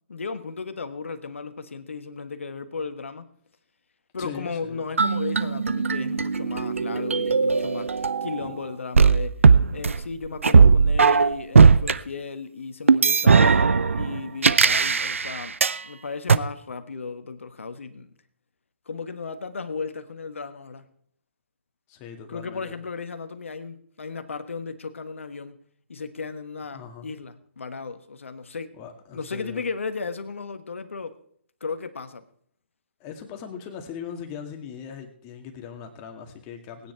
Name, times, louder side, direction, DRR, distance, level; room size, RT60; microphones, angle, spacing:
voice 1, 0.1-3.3 4.1-7.9 8.2-9.4 9.7-13.6 13.9-15.6 15.8-18.1 18.9-20.9 22.3-25.6 25.9-28.7 29.1-31.2 31.6-32.2, left 4 dB, 80° left, 10 dB, 1.4 m, -35 dB
voice 2, 4.2-4.8 8.4-8.5 13.2-13.6 21.9-22.8 26.7-27.1 28.7-29.6 33.0-36.9, left 7 dB, 30° left, 5 dB, 2.1 m, -39 dB
sound 1, 5.0-8.5 9.0-12.0 12.9-15.8 16.3-16.4, right 5 dB, 85° right, 0.6 m, -18 dB
18.5 x 9.7 x 4.6 m, 0.63 s
hypercardioid pair, 135°, 7 cm